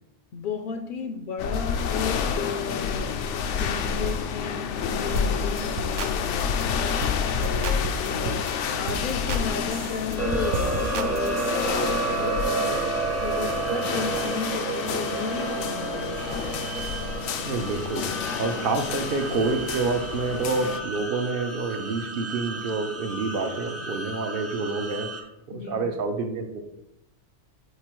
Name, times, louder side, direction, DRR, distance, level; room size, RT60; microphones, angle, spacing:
voice 1, 0.3-6.7 7.3-8.5 8.8-12.9 13.2-16.5 25.5-25.9, left 6 dB, 60° left, 5 dB, 0.6 m, -34 dB
sound 1, 1.4-20.8, left 6 dB, 85° left, 0.9 m, -29 dB
sound 2, 5.2-5.3 5.6-6.1 6.4-6.6 7.0-7.2 7.4-8.5 8.9-9.4 9.7-11.7, right 4 dB, 85° right, 0.9 m, -33 dB
sound 3, 10.2-25.2, right 3 dB, 15° right, 0.6 m, -31 dB
voice 2, 17.4-25.1 25.5-26.6, right 3 dB, 55° right, 6 dB, 0.8 m, -28 dB
8.1 x 4.3 x 3.0 m, 0.90 s
omnidirectional pair, 1.2 m